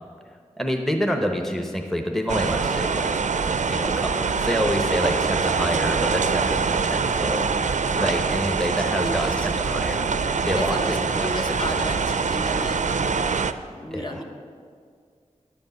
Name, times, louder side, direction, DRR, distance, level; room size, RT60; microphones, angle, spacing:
voice 1, 0.6-3.3 3.7-7.5 8.0-10.1 10.4-11.8 13.9-14.2, equal, 5° left, 3 dB, 0.9 m, -27 dB
sound 1, 2.3-13.5, right 5 dB, 70° right, 0.4 m, -24 dB
sound 2, 4.7-13.5, equal, 90° left, 2.8 m, -41 dB
voice 2, 7.9-8.4 8.7-9.3 10.6-13.0 13.7-14.2, equal, 35° left, 2 dB, 1.2 m, -33 dB
10.0 x 5.2 x 7.9 m, 2.1 s
wide cardioid pair, 45°, 13 cm